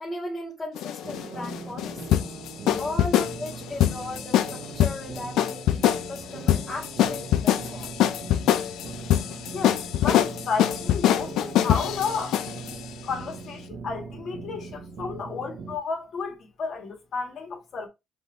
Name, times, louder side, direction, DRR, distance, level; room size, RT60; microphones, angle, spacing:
voice 1, 0.0-2.3 2.8-7.9, left 2 dB, 20° left, 1.9 m, -37 dB
sound 1, 0.8-12.8, left 11 dB, 85° left, 0.4 m, -24 dB
sound 2, 1.0-15.8, right 5 dB, 65° right, 0.8 m, -41 dB
voice 2, 9.5-12.4 13.0-17.9, left 5 dB, 60° left, 1.7 m, -32 dB
5.4 x 2.6 x 3.3 m
cardioid pair, 90°, 0 cm